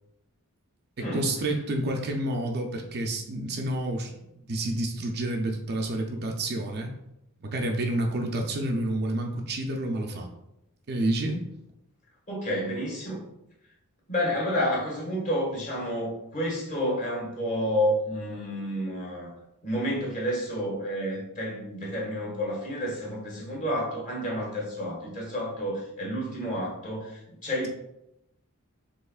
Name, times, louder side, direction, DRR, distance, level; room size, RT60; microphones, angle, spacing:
voice 1, 1.1-4.2 4.5-6.9 7.4-10.3 10.9-11.4, right 1 dB, 45° right, 2 dB, 0.5 m, -29 dB
voice 2, 12.3-13.2 14.1-19.3 19.6-27.7, equal, 35° left, -4 dB, 1.6 m, -30 dB
5.5 x 3.5 x 2.4 m, 0.85 s
head